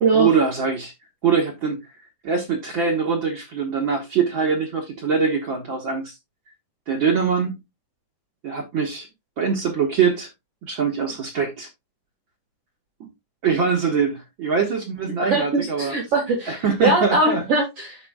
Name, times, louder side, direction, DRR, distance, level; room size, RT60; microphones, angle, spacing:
voice 1, 0.1-0.9 1.2-1.8 2.2-6.1 6.9-7.6 8.4-9.1 9.4-10.3 10.6-11.7 13.0-13.1 13.4-15.9 16.5-17.4, right 6 dB, 70° right, 1.1 m, -23 dB
voice 2, 15.2-18.0, right 3 dB, 50° right, 2.3 m, -21 dB
13.0 x 4.5 x 2.3 m
omnidirectional pair, 4.2 m